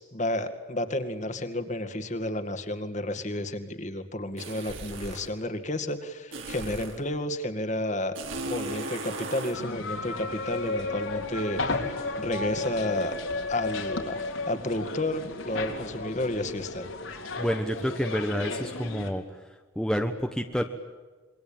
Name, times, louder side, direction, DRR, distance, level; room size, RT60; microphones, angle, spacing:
voice 1, 0.0-8.1 8.5-13.1 13.5-14.2 14.5-16.9, left 1 dB, 35° left, 8 dB, 2.2 m, -31 dB
sound 1, 4.4-5.3 6.3-7.0 8.1-9.6, right 2 dB, 70° right, 4.9 m, -36 dB
sound 2, 9.5-19.1, left 3 dB, 80° left, 4.1 m, -34 dB
voice 2, 17.4-19.2 19.7-20.6, equal, 5° left, 3 dB, 1.2 m, -28 dB
27.0 x 23.5 x 8.9 m, 1.4 s
head